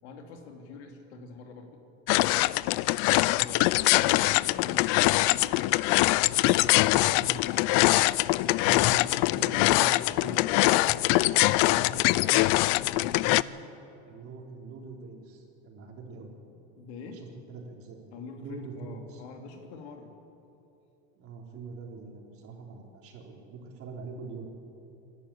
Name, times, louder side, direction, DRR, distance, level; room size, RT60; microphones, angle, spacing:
voice 1, 0.0-1.8 2.9-5.6 16.8-17.2 18.1-20.1, left 4 dB, 85° left, 4 dB, 2.9 m, -46 dB
sound 1, 2.1-13.4, left 20 dB, 65° left, 0.5 m, -23 dB
voice 2, 6.8-8.1 8.6-13.6 14.0-16.3 17.0-17.2 17.5-19.2 21.2-24.5, right 4 dB, 45° right, 1 dB, 3.8 m, -44 dB
26.0 x 11.5 x 8.7 m, 2.9 s
supercardioid pair, 135°, 32 cm